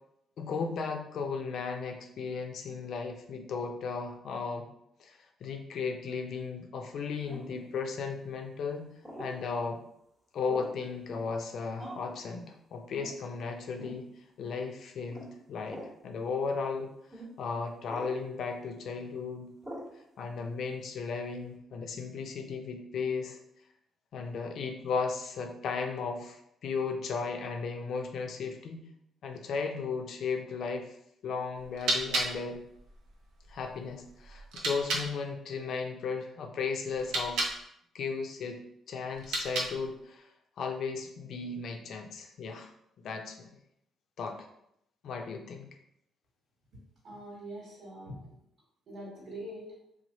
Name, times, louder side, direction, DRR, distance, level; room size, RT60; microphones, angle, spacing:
voice 1, 0.4-4.7 5.0-8.9 9.2-9.8 10.3-14.0 14.4-16.9 17.4-19.5 20.2-23.4 24.1-28.8 29.2-30.9 31.2-32.6 33.5-37.6 37.9-38.6 38.9-40.2 40.6-42.7 43.0-43.5 44.2-44.5 45.0-45.7, left 5 dB, 65° left, 3 dB, 0.5 m, -35 dB
sound 1, 7.3-7.6 9.0-9.4 10.5-10.8 11.8-12.1 12.9-13.1 13.8-14.0 15.1-15.3 15.7-15.9 17.1-17.3 17.9-18.2 19.6-19.9, equal, 5° right, 1.0 m, -43 dB
sound 2, 31.5-35.1 36.9-37.6 39.1-40.0, right 2 dB, 85° right, 0.6 m, -34 dB
voice 2, 46.7-48.4 48.9-49.7, right 1 dB, 65° right, -6 dB, 1.3 m, -44 dB
3.1 x 2.1 x 4.0 m, 0.75 s
cardioid pair, 90°, 0 cm